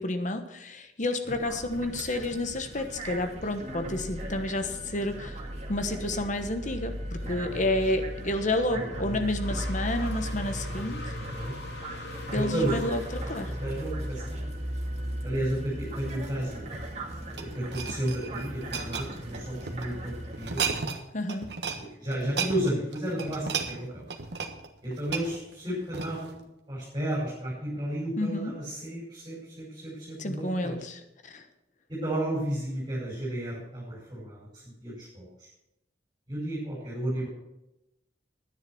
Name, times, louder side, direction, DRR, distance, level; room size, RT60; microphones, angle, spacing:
voice 1, 0.0-5.4 5.7-11.0 12.3-13.5 21.1-21.5 28.2-28.5 30.2-31.4, left 1 dB, 45° left, 8 dB, 1.2 m, -30 dB
sound 1, 1.3-20.6, right 1 dB, 40° right, 2.3 m, -37 dB
voice 2, 8.7-9.1 11.1-11.5 12.3-13.0 13.6-14.5 15.2-16.7 17.3-20.6 21.8-24.1 24.8-30.8 31.9-35.5 36.3-37.3, right 1 dB, 25° right, -7 dB, 5.4 m, -33 dB
sound 2, 9.4-14.7, left 3 dB, 70° left, 2.3 m, -44 dB
sound 3, 16.7-19.9 20.3-21.0 21.3-21.8 22.1-26.4 26.9-27.1, right 5 dB, 65° right, 1.3 m, -34 dB
10.5 x 9.9 x 6.2 m, 0.89 s
head